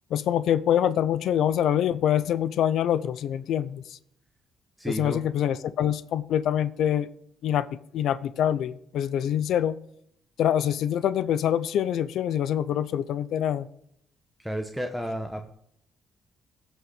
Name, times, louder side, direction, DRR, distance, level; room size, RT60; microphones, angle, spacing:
voice 1, 0.1-4.0 4.9-7.1 7.4-9.8 10.4-13.7, left 10 dB, 75° left, 16 dB, 0.6 m, -25 dB
voice 2, 4.8-5.2 14.4-15.5, equal, 5° right, 4 dB, 1.1 m, -32 dB
15.5 x 6.4 x 5.0 m, 0.71 s
cardioid pair, 90°, 0 cm